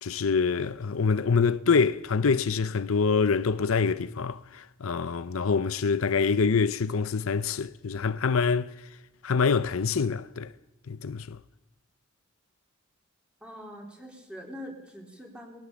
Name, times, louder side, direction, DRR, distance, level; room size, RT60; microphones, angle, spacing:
voice 1, 0.0-8.7 9.2-10.5 10.9-11.4, left 5 dB, 80° left, 0.6 m, -25 dB
voice 2, 13.4-15.6, equal, 5° right, 4.0 m, -43 dB
21.0 x 17.5 x 7.2 m
head